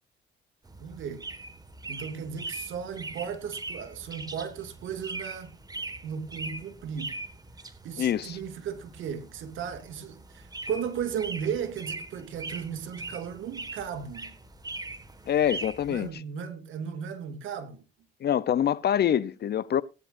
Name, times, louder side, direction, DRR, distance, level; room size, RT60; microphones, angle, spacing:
sound 1, 0.6-16.1, right 2 dB, 20° right, 1.7 m, -41 dB
voice 1, 0.8-1.3 1.9-5.5 6.0-7.2 7.8-14.4 15.9-17.8, right 7 dB, 80° right, 2.4 m, -35 dB
voice 2, 8.0-8.4 15.3-16.1 18.2-19.8, left 10 dB, 55° left, 0.7 m, -25 dB
17.5 x 10.5 x 2.6 m
cardioid pair, 90°, 20 cm